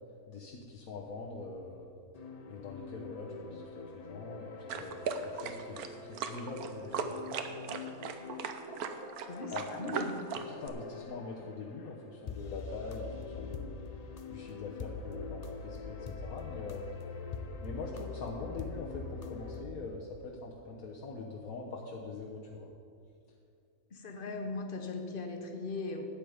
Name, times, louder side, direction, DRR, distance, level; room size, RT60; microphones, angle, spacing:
voice 1, 0.3-1.9 2.5-7.2 9.5-9.6 10.5-13.8 14.3-16.8 17.6-22.7, left 3 dB, 75° left, -2 dB, 1.4 m, -43 dB
sound 1, 2.1-19.6, left 5 dB, 55° left, 0.4 m, -44 dB
sound 2, 4.7-10.7, right 6 dB, 90° right, 1.3 m, -38 dB
voice 2, 9.3-10.3 23.9-26.0, left 3 dB, 40° left, 4 dB, 1.1 m, -39 dB
12.0 x 8.5 x 5.0 m, 2.3 s
omnidirectional pair, 1.5 m